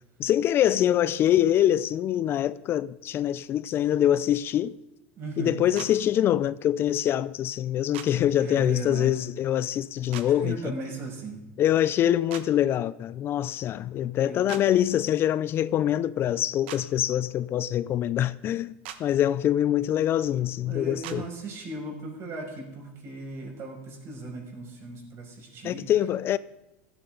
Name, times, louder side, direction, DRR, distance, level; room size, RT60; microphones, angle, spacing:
voice 1, 0.2-4.8 5.4-10.7 11.6-18.7 19.0-21.3 25.6-26.4, left 11 dB, 35° left, 0.4 m, -24 dB
voice 2, 5.2-5.6 8.3-9.1 10.2-11.4 14.2-14.6 20.7-25.9, right 2 dB, 45° right, 6.1 m, -37 dB
sound 1, 5.8-5.9 7.9-8.1 10.1-10.3 12.3-12.5 14.5-14.6 16.7-16.8 18.8-19.0 21.0-21.2, right 11 dB, 75° right, 1.4 m, -38 dB
16.5 x 14.0 x 3.8 m
supercardioid pair, 120°, 7 cm